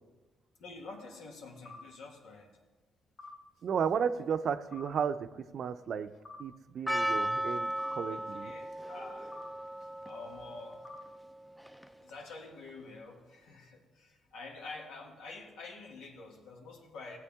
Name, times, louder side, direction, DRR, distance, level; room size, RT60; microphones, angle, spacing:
voice 1, 0.6-2.5 7.5-9.3 9.8-10.8 12.0-17.2, left 3 dB, 90° left, -1 dB, 2.2 m, -48 dB
sound 1, 1.7-1.8 3.2-3.4 4.7-4.9 6.3-6.4 7.8-8.0 9.3-9.5 10.8-11.0, left 3 dB, 35° left, 2.0 m, -48 dB
voice 2, 3.6-6.1 6.4-8.5, right 7 dB, 60° right, 11 dB, 0.6 m, -33 dB
Percussion, 6.9-12.1, right 1 dB, 5° left, 0.5 m, -36 dB
17.0 x 8.3 x 3.6 m, 1.2 s
cardioid pair, 90°, 0 cm